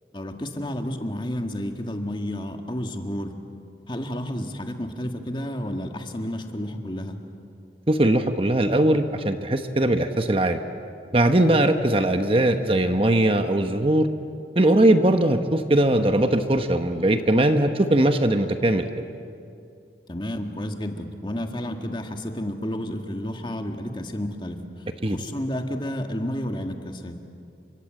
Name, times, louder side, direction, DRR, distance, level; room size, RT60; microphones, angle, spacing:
voice 1, 0.1-3.3 3.9-7.2 20.1-27.2, equal, 25° left, 4 dB, 1.8 m, -31 dB
voice 2, 7.9-10.6 11.1-14.1 14.6-19.0 25.0-25.2, right 1 dB, 30° right, 7 dB, 1.1 m, -20 dB
30.0 x 25.0 x 7.7 m, 2.5 s
head